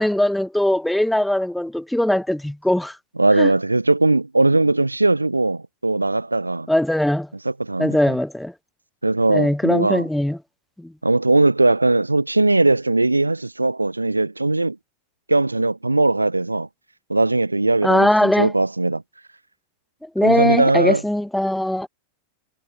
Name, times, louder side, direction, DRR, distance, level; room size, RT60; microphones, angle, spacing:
voice 1, 0.0-3.0 3.4-3.5 6.7-7.3 7.8-8.5 9.3-10.4 10.8-10.9 17.8-18.5 20.0-21.9, left 1 dB, 5° left, 0.9 m, -20 dB
voice 2, 3.2-6.7 7.4-8.1 9.0-10.0 11.0-14.8 15.3-16.7 17.1-19.0 20.2-21.0, right 2 dB, 85° right, 1.3 m, -19 dB
figure-of-eight pair, 90°, 0 cm